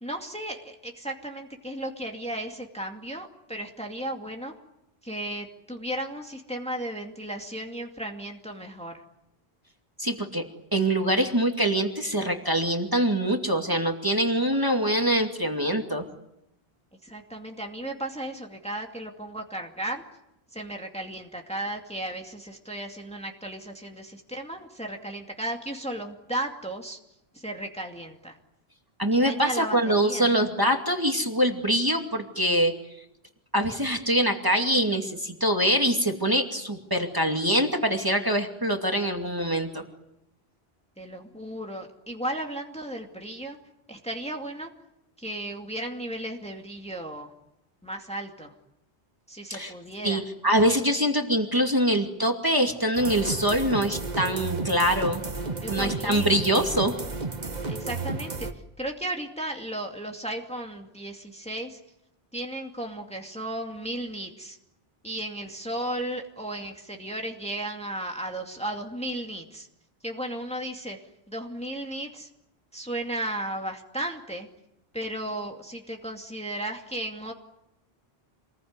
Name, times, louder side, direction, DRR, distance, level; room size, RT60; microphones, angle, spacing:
voice 1, 0.0-4.5 5.0-9.0 17.0-20.0 20.5-27.0 27.3-28.4 29.1-30.3 41.0-43.6 43.9-44.7 45.2-47.3 47.8-48.5 49.3-50.2 55.6-56.3 57.7-58.5 58.8-61.8 62.3-64.6 65.0-69.7 70.0-71.0 71.3-72.3 72.7-74.5 74.9-77.3, right 1 dB, 5° left, 2 dB, 2.4 m, -35 dB
voice 2, 10.0-10.4 10.7-16.0 29.0-32.7 33.5-39.8 49.5-49.7 50.0-55.2 55.7-56.9, right 1 dB, 20° right, 3 dB, 2.5 m, -24 dB
sound 1, 52.9-58.5, right 3 dB, 45° right, 1.8 m, -32 dB
27.5 x 21.0 x 9.7 m, 0.86 s
omnidirectional pair, 1.0 m